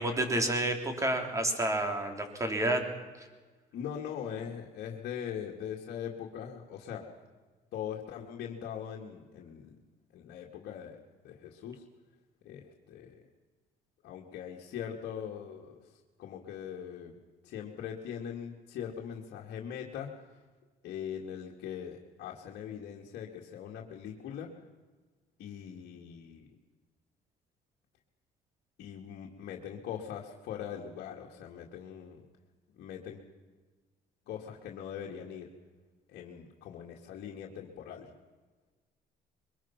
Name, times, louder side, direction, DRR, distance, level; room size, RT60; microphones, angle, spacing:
voice 1, 0.0-2.8, right 1 dB, 20° right, 5 dB, 3.5 m, -29 dB
voice 2, 3.7-7.1 7.7-9.7 10.1-11.8 12.4-13.2 14.0-15.8 16.2-17.1 17.4-20.2 20.8-24.5 25.4-26.5 28.8-32.2 32.8-33.2 34.3-35.5 36.1-38.1, left 8 dB, 70° left, -1 dB, 2.2 m, -41 dB
23.0 x 21.5 x 5.9 m, 1.3 s
cardioid pair, 110°, 17 cm